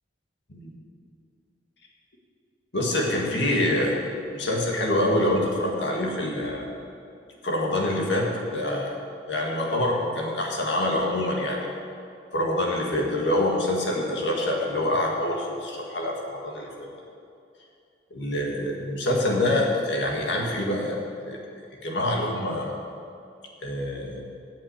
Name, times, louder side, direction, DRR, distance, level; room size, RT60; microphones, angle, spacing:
voice 1, 2.7-4.0 4.3-6.7 7.4-9.0 9.3-11.7 12.3-16.9 18.1-21.0 21.3-21.4 21.8-22.8 23.6-24.2, left 1 dB, 70° left, -1 dB, 1.9 m, -26 dB
8.7 x 7.4 x 8.1 m, 2.5 s
head